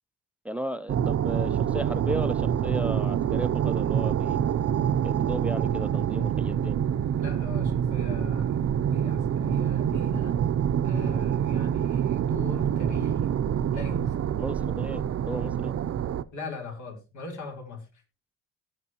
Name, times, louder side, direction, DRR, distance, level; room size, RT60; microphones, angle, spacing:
voice 1, 0.4-4.4 5.0-6.8 14.4-15.7, equal, 5° right, 15 dB, 0.6 m, -35 dB
sound 1, 0.9-16.2, right 9 dB, 55° right, 0.7 m, -26 dB
voice 2, 7.2-10.4 10.8-13.3 13.7-14.1 16.3-17.9, left 3 dB, 70° left, 2 dB, 3.9 m, -40 dB
18.5 x 6.7 x 2.9 m, 0.30 s
cardioid pair, 90°, 30 cm